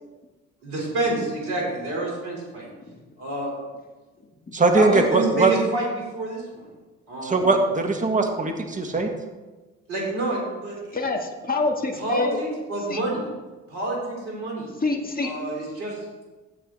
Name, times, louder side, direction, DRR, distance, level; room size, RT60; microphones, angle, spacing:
voice 1, 0.6-2.7 3.2-3.5 4.7-6.7 7.1-7.6 9.9-11.0 12.0-13.3 13.7-14.7 15.2-16.1, right 2 dB, 75° right, -2 dB, 4.6 m, -28 dB
voice 2, 4.5-5.5 7.2-9.1, right 3 dB, 20° right, 3 dB, 1.7 m, -20 dB
voice 3, 10.9-12.4 12.9-13.0 14.8-15.3, left 3 dB, 25° left, 1 dB, 2.1 m, -26 dB
14.5 x 8.4 x 4.2 m, 1.2 s
hypercardioid pair, 50°, 38 cm